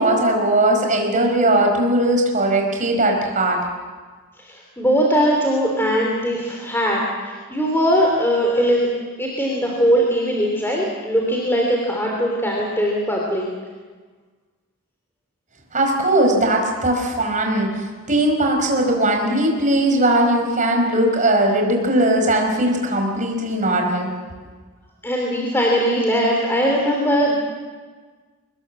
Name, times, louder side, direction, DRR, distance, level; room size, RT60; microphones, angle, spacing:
voice 1, 0.0-3.6 15.7-24.1, right 1 dB, 35° right, 2 dB, 5.0 m, -19 dB
voice 2, 4.5-8.9 9.2-13.5 25.0-27.3, equal, 10° left, -1 dB, 3.2 m, -20 dB
25.0 x 20.5 x 7.5 m, 1.4 s
head